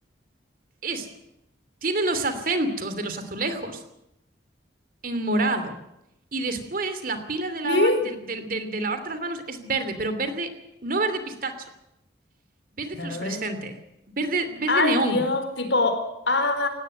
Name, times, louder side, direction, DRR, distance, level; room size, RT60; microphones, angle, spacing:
voice 1, 1.8-3.8 5.0-5.7 6.3-10.5 10.8-11.6 12.8-13.8 14.1-15.2, right 2 dB, 50° right, 10 dB, 2.9 m, -28 dB
voice 2, 7.6-8.0 12.9-13.4 14.7-16.7, left 2 dB, 75° left, 7 dB, 4.6 m, -23 dB
19.0 x 17.5 x 7.9 m, 0.86 s
head